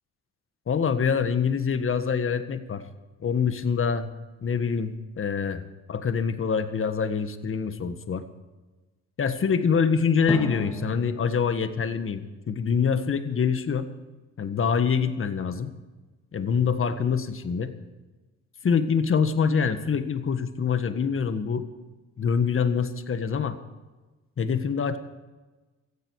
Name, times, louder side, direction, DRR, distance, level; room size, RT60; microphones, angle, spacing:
voice 1, 0.7-2.8 3.2-4.1 4.4-5.6 5.9-8.2 9.2-13.9 14.4-15.7 16.3-17.7 18.6-21.6 22.2-23.6 24.4-25.0, left 6 dB, 45° left, 10 dB, 1.6 m, -25 dB
Drum, 10.3-13.2, left 1 dB, 10° left, 2.6 m, -36 dB
17.0 x 15.0 x 4.8 m, 1.2 s
cardioid pair, 90°, 30 cm